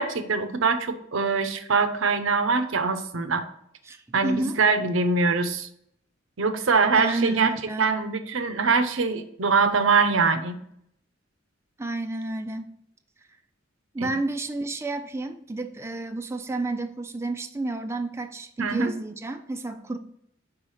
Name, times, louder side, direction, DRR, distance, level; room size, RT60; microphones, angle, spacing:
voice 1, 0.0-3.5 4.1-5.7 6.4-10.5 14.0-14.1 18.6-18.9, right 4 dB, 75° right, 9 dB, 0.7 m, -23 dB
voice 2, 3.8-4.6 6.9-7.9 11.8-12.7 13.9-20.0, right 2 dB, 15° right, 6 dB, 0.4 m, -30 dB
4.8 x 4.8 x 5.6 m, 0.72 s
head